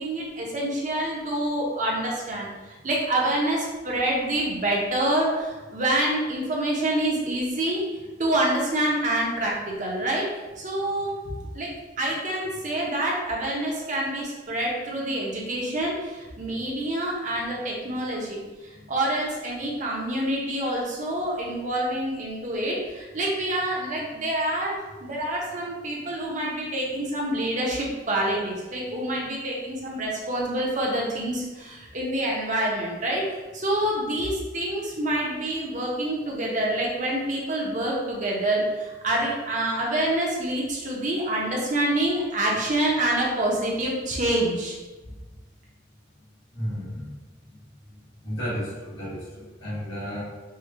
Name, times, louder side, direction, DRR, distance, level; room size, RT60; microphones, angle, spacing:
voice 1, 0.0-2.5 2.8-7.8 8.2-44.8, right 1 dB, 40° right, -3 dB, 0.8 m, -27 dB
voice 2, 46.5-47.1 48.2-50.2, equal, 70° left, -7 dB, 1.4 m, -33 dB
4.9 x 2.3 x 2.8 m, 1.2 s
head